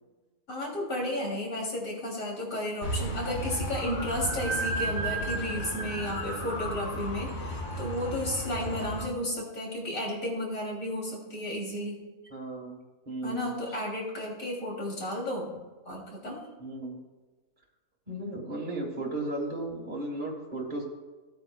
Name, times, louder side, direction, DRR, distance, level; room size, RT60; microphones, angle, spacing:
voice 1, 0.5-12.0 13.2-15.5 15.9-16.4, left 1 dB, 55° left, -3 dB, 3.5 m, -33 dB
sound 1, 2.8-9.1, right 1 dB, 75° left, 2.0 m, -33 dB
voice 2, 12.3-12.8 13.1-13.5 16.6-17.0 18.1-20.8, right 2 dB, 30° right, -4 dB, 1.6 m, -35 dB
17.5 x 9.1 x 2.3 m, 1.3 s
omnidirectional pair, 1.7 m